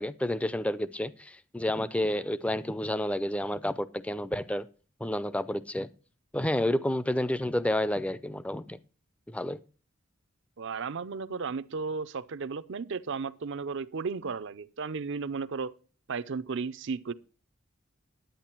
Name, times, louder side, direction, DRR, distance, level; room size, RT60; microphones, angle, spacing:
voice 1, 0.0-4.7 5.0-5.9 6.3-8.8 9.3-9.6, left 1 dB, 5° left, 0.4 m, -30 dB
voice 2, 10.6-15.7 16.1-17.1, right 5 dB, 65° right, 0.6 m, -34 dB
10.5 x 9.0 x 4.4 m
head